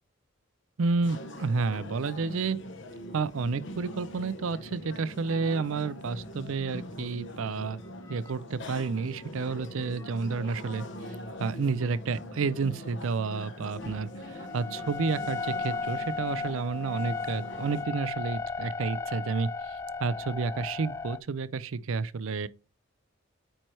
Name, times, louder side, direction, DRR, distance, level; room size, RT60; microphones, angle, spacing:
voice 1, 0.8-2.6 3.1-7.8 8.1-10.9 11.4-22.5, right 4 dB, 70° right, 0.5 m, -30 dB
sound 1, 1.0-17.8, left 1 dB, 55° left, 1.0 m, -43 dB
sound 2, 8.1-8.3 9.2-9.5 9.8-10.4 11.0-11.5 13.4-21.2, left 4 dB, 15° left, 0.4 m, -36 dB
8.9 x 4.5 x 3.2 m
head